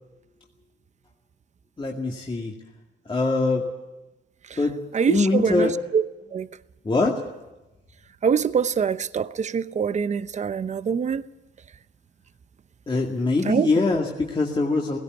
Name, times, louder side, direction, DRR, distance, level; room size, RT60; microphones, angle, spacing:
voice 1, 1.8-2.5 3.1-3.7 4.6-4.8 5.1-5.8 6.8-7.2 12.9-15.0, left 3 dB, 25° left, 2.3 m, -23 dB
voice 2, 4.9-5.7 5.9-6.0 6.3-6.5 8.2-11.2 13.5-13.7, right 6 dB, 35° right, 0.8 m, -24 dB
17.0 x 17.0 x 9.5 m
cardioid pair, 90°, 20 cm